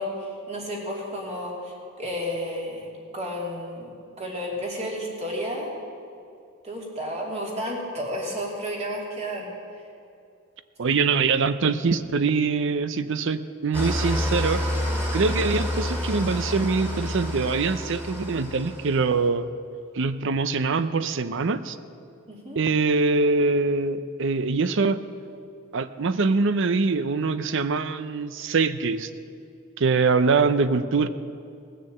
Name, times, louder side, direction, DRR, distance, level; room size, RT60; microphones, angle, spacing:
voice 1, 0.0-5.7 6.6-9.5 22.3-22.6, equal, 30° right, -2 dB, 2.7 m, -32 dB
voice 2, 10.8-14.6 15.1-19.5 19.9-21.8 22.6-25.0 25.7-29.1 29.8-31.1, right 4 dB, 60° right, 13 dB, 0.6 m, -23 dB
Engine starting / Idling, 13.7-19.2, left 1 dB, 10° right, 2.6 m, -28 dB
19.0 x 6.8 x 7.8 m, 2.5 s
head